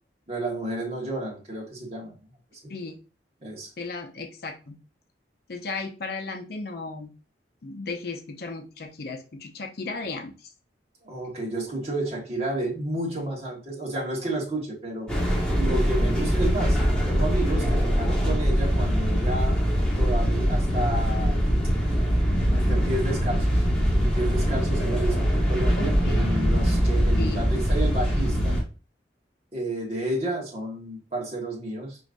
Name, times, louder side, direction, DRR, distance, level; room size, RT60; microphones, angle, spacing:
voice 1, 0.3-2.2 3.4-3.7 11.0-15.1 15.5-16.8 17.0-19.6 20.0-21.4 22.5-23.6 24.0-28.6 29.5-32.0, right 1 dB, 35° right, -3 dB, 1.5 m, -31 dB
voice 2, 3.8-4.8 5.5-7.1 7.6-10.5 25.8-26.3 27.2-27.4, left 3 dB, 60° left, 5 dB, 0.6 m, -35 dB
sound 1, 15.1-28.6, equal, 5° left, 1.1 m, -23 dB
4.9 x 3.1 x 2.5 m, 0.33 s
head